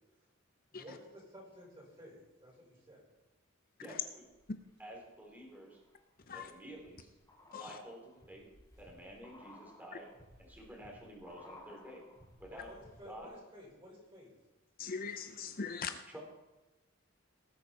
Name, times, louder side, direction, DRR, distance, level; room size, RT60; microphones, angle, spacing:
voice 1, 0.7-3.0 12.5-14.3, equal, 25° right, -4 dB, 5.1 m, -53 dB
voice 2, 3.8-4.3 4.8-5.8 6.3-7.1 7.6-8.5 8.8-10.1 10.4-12.0 12.4-12.7 13.0-13.3 16.1-16.2, equal, 10° right, -1 dB, 3.2 m, -50 dB
sound 1, 4.2-5.0 5.4-13.3 13.6-13.7, left 1 dB, 20° left, 3.5 m, -59 dB
voice 3, 14.8-16.0, left 5 dB, 45° left, 9 dB, 0.6 m, -41 dB
18.5 x 8.7 x 4.2 m, 1.1 s
head